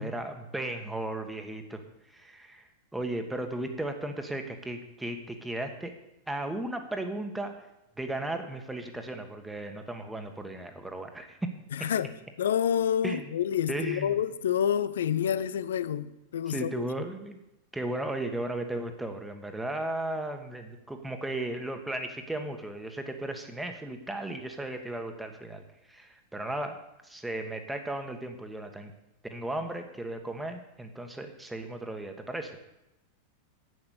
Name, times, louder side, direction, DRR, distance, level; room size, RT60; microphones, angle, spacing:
voice 1, 0.0-1.8 2.1-5.9 6.3-7.5 8.0-11.5 11.8-11.9 13.0-13.3 13.7-14.2 16.5-17.4 17.7-25.6 25.9-26.8 27.0-28.9 29.2-32.6, right 1 dB, 5° right, 1.6 m, -35 dB
voice 2, 11.7-12.1 12.4-16.8, left 9 dB, 60° left, 0.6 m, -28 dB
11.0 x 8.7 x 6.6 m
figure-of-eight pair, 90°, 0 cm